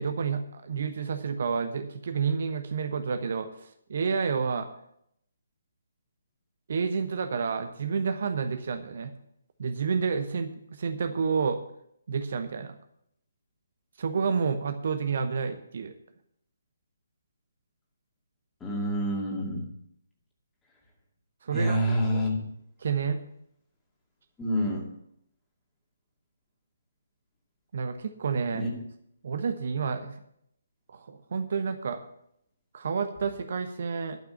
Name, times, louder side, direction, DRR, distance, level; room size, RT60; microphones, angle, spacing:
voice 1, 0.0-4.7 6.7-9.1 9.6-11.6 12.1-12.7 14.0-15.9 21.4-21.8 22.1-22.3 22.8-23.2 27.7-28.6 29.2-30.2 30.9-32.0 32.7-34.2, right 5 dB, 50° right, 8 dB, 0.8 m, -29 dB
voice 2, 18.6-19.7 21.5-22.4 24.4-24.9 28.5-28.7, equal, 10° left, -2 dB, 2.3 m, -27 dB
12.0 x 6.0 x 7.7 m, 0.74 s
figure-of-eight pair, 140°, 0 cm